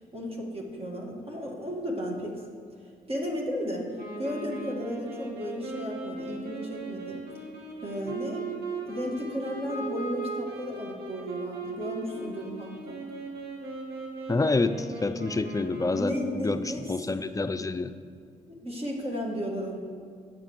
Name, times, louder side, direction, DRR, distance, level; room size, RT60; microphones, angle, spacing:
voice 1, 0.0-2.4 3.1-7.2 7.8-8.5 8.9-13.0 15.7-16.9 18.5-19.8, equal, 35° right, -2 dB, 1.9 m, -34 dB
Wind instrument woodwind instrument, 3.9-16.4, right 2 dB, 70° right, 1.8 m, -38 dB
voice 2, 14.3-17.9, left 3 dB, 20° left, 10 dB, 0.5 m, -28 dB
9.1 x 5.8 x 7.0 m, 2.2 s
supercardioid pair, 60°, 17 cm